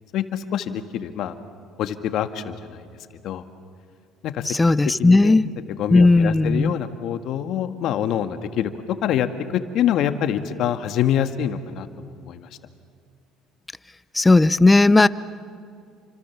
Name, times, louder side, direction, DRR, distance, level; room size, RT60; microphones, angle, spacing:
voice 1, 0.1-1.3 1.8-2.9 3.2-3.4 4.2-4.5 5.0-5.4 5.8-8.7 9.0-9.3 9.5-12.5, left 10 dB, 65° left, 9 dB, 1.8 m, -25 dB
voice 2, 4.5-5.5 5.9-6.7 14.1-15.1, left 2 dB, 15° left, 17 dB, 0.8 m, -15 dB
29.5 x 25.5 x 7.3 m, 2.3 s
supercardioid pair, 80°, 0 cm